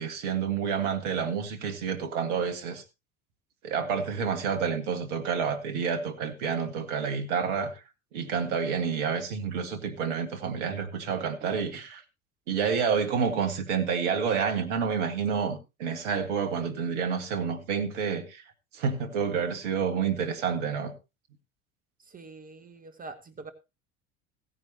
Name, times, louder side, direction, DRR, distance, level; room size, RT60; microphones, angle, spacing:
voice 1, 0.0-2.8 3.6-7.8 8.1-12.0 12.5-18.4 18.7-20.9, right 6 dB, 60° right, 1.9 m, -29 dB
voice 2, 22.0-23.5, right 3 dB, 20° right, 1.3 m, -45 dB
16.5 x 9.7 x 2.9 m
figure-of-eight pair, 70°, 40 cm